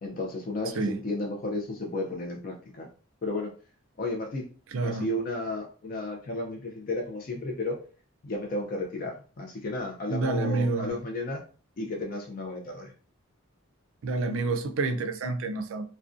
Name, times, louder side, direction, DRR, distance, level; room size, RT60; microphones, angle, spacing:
voice 1, 0.0-2.9 3.2-3.5 4.0-4.5 4.8-7.8 8.2-11.4 11.8-12.9, left 2 dB, 40° left, 0.3 m, -33 dB
voice 2, 4.7-5.1 10.1-11.0 14.0-15.9, right 3 dB, 70° right, 0.3 m, -28 dB
2.4 x 2.1 x 2.4 m
head